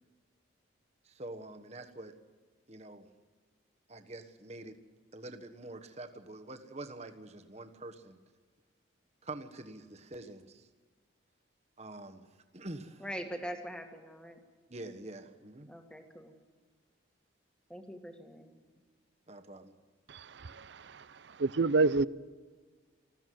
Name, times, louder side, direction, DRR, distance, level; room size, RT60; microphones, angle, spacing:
voice 1, 1.0-2.1 2.7-3.1 3.9-4.8 5.1-8.2 9.2-10.7 11.8-12.3 12.5-13.0 14.7-15.7 19.3-19.7, right 2 dB, 30° right, 1.3 m, -46 dB
voice 2, 13.0-14.4 15.7-16.3 17.7-18.6, equal, 5° left, 1.9 m, -43 dB
voice 3, 20.1-20.6 21.4-22.1, right 3 dB, 55° right, 0.5 m, -27 dB
20.0 x 15.0 x 9.4 m
head